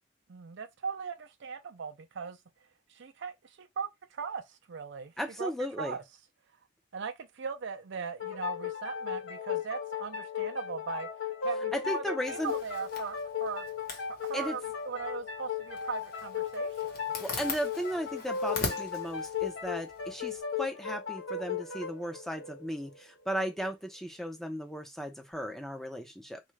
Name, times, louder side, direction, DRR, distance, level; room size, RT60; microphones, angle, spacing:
voice 1, 0.3-2.4 2.9-5.1 5.4-5.5 5.8-6.0 6.9-11.1 11.4-13.6 14.1-17.1, right 6 dB, 65° right, 0.5 m, -39 dB
voice 2, 5.2-6.0 11.7-12.5 14.3-14.6 17.2-26.4, equal, ahead, 0.6 m, -36 dB
sound 1, 8.2-23.5, left 7 dB, 75° left, 0.9 m, -36 dB
Zipper (clothing), 12.3-20.4, left 3 dB, 50° left, 1.0 m, -42 dB
3.6 x 2.4 x 3.2 m
head